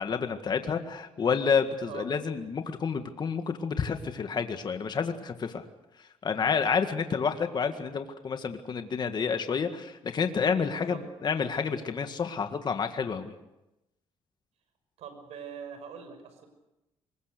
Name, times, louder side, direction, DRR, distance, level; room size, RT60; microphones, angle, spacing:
voice 1, 0.0-5.7 6.2-13.3, left 6 dB, 40° left, 7 dB, 1.8 m, -29 dB
voice 2, 15.0-16.5, right 7 dB, 80° right, 8 dB, 6.1 m, -43 dB
25.0 x 21.5 x 6.7 m, 0.93 s
cardioid pair, 100°, 11 cm